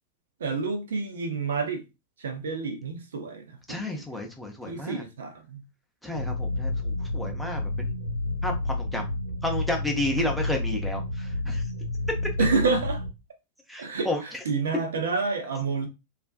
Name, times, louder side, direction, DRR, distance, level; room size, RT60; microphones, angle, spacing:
voice 1, 0.4-1.8 2.2-3.9 4.7-5.6 12.4-13.0 13.8-15.9, right 4 dB, 65° right, 0.5 m, -29 dB
voice 2, 3.7-5.0 6.0-7.9 8.4-9.1 9.4-11.6 13.7-14.2, left 1 dB, ahead, 0.6 m, -32 dB
sound 1, 6.1-13.1, left 2 dB, 90° left, 0.4 m, -30 dB
2.4 x 2.1 x 2.4 m
figure-of-eight pair, 90°, 0 cm